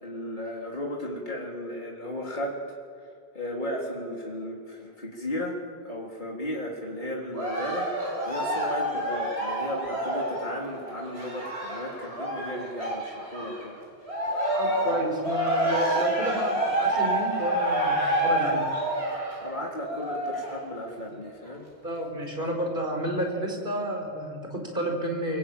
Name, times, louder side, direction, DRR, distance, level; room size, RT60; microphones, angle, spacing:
voice 1, 0.0-13.8 14.8-15.0 19.4-21.7, equal, 50° left, -2 dB, 3.7 m, -35 dB
Cheering, 7.3-13.6 14.0-20.6 21.2-21.3, right 1 dB, 80° right, 8.5 m, -28 dB
voice 2, 14.6-18.7 21.8-25.4, right 1 dB, 55° right, 2 dB, 5.0 m, -30 dB
24.5 x 23.5 x 9.0 m, 2.2 s
omnidirectional pair, 1.1 m